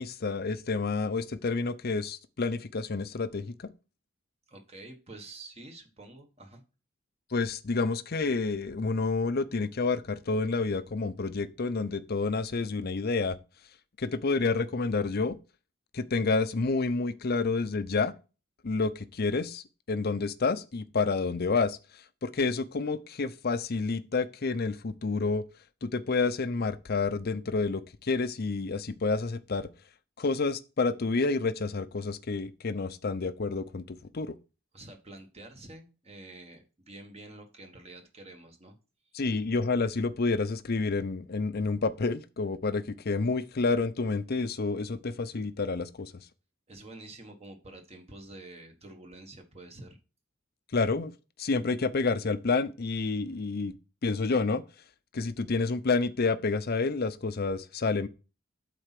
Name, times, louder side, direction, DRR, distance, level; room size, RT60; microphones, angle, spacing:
voice 1, 0.0-3.7 7.3-13.4 14.0-15.4 15.9-18.1 18.6-21.8 22.2-25.4 25.8-29.7 30.2-34.3 39.1-46.1 50.7-51.1 51.4-53.7 54.0-54.6 55.1-58.1, left 4 dB, 50° left, 0.6 m, -29 dB
voice 2, 4.5-6.6 34.7-38.8 46.7-50.0, right 2 dB, 30° right, 1.4 m, -48 dB
8.0 x 4.2 x 5.9 m
head